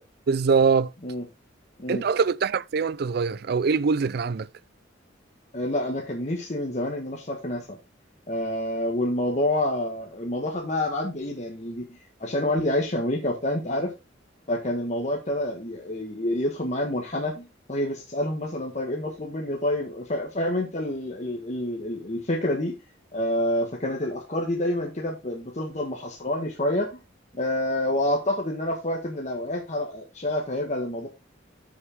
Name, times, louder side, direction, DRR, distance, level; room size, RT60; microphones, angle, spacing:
voice 1, 0.3-0.9 1.9-4.5, right 5 dB, 55° right, 0.4 m, -23 dB
voice 2, 5.5-7.8 8.3-13.9 14.5-22.8 23.1-27.0 27.3-31.1, left 1 dB, 40° left, 1.5 m, -28 dB
9.3 x 6.5 x 3.6 m
head